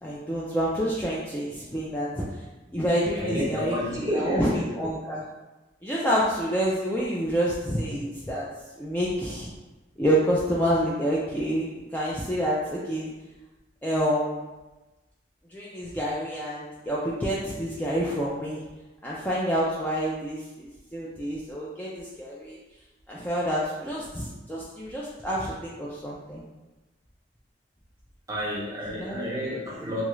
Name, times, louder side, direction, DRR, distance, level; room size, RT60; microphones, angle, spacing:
voice 1, 0.0-2.2 2.7-5.2 5.8-8.4 8.8-9.5 10.0-11.7 11.9-13.1 13.8-14.4 15.5-18.6 19.0-22.6 23.1-26.4 29.0-29.2, equal, 10° left, -6 dB, 0.3 m, -28 dB
voice 2, 3.2-4.8 28.3-30.0, equal, 20° right, -5 dB, 0.8 m, -30 dB
3.0 x 2.4 x 3.0 m, 1.1 s
head